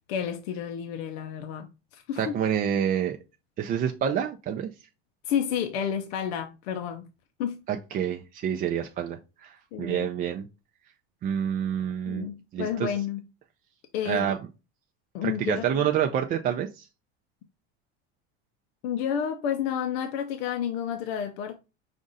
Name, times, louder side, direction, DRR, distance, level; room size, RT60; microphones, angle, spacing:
voice 1, 0.1-2.4 5.3-7.1 7.4-7.6 9.7-10.1 12.1-13.2 13.9-14.3 15.1-15.9 18.8-21.6, left 8 dB, 85° left, 0.6 m, -30 dB
voice 2, 2.2-3.2 3.6-4.7 7.7-10.5 11.2-12.3 12.5-12.9 14.1-14.4 15.2-16.9, right 9 dB, 30° right, 0.4 m, -28 dB
5.1 x 2.5 x 3.9 m
supercardioid pair, 135°, 31 cm